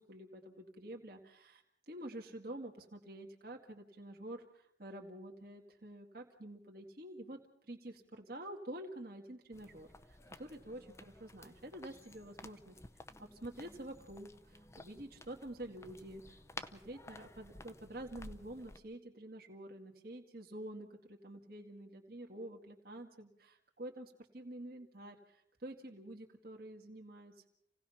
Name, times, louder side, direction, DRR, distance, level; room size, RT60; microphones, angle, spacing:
voice 1, 0.0-7.4 7.7-12.8 13.2-27.5, right 1 dB, 50° right, 1 dB, 2.0 m, -48 dB
sound 1, 9.5-18.8, left 2 dB, 15° left, 0.7 m, -54 dB
28.0 x 17.5 x 5.7 m, 0.77 s
head